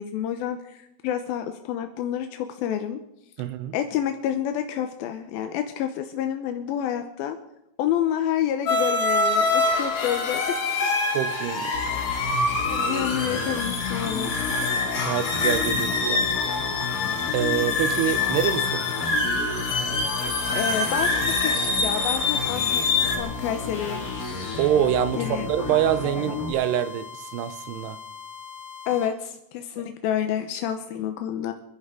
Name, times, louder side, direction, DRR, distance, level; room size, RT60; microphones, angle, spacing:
voice 1, 0.0-3.0 3.7-7.4 7.8-10.4 10.8-10.9 12.6-14.4 20.5-22.8 23.2-24.0 25.1-25.5 28.9-31.5, left 10 dB, 80° left, 2.3 m, -28 dB
voice 2, 3.4-3.8 11.1-11.9 15.0-16.3 17.3-18.9 24.6-28.0 29.8-29.9, right 10 dB, 80° right, 2.7 m, -26 dB
sound 1, 8.7-23.2, left 3 dB, 50° left, 2.6 m, -25 dB
sound 2, 9.6-29.1, left 6 dB, 20° right, 4.4 m, -41 dB
sound 3, 11.7-26.5, left 3 dB, 30° left, 1.7 m, -32 dB
29.0 x 11.0 x 3.8 m
omnidirectional pair, 5.1 m